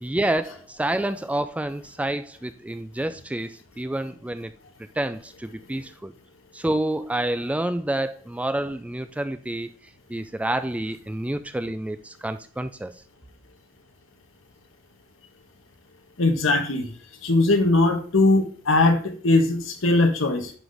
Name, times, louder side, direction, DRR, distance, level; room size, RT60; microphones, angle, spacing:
voice 1, 0.0-4.5 5.0-6.1 6.5-9.7 10.1-12.9, right 1 dB, 5° right, 10 dB, 0.3 m, -28 dB
voice 2, 16.2-16.9 17.2-20.5, left 2 dB, 70° left, 6 dB, 1.2 m, -20 dB
11.0 x 4.0 x 3.4 m, 0.41 s
head